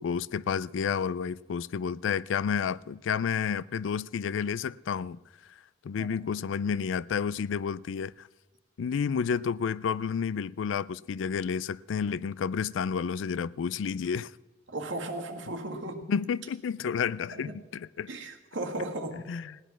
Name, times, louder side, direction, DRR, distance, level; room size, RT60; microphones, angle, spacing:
voice 1, 0.0-5.2 5.8-8.3 8.8-14.3 16.1-18.1 19.3-19.6, left 6 dB, 85° left, 0.4 m, -30 dB
voice 2, 14.7-16.1 17.3-17.5 18.1-19.3, right 2 dB, 85° right, 1.8 m, -36 dB
17.5 x 10.5 x 6.0 m
head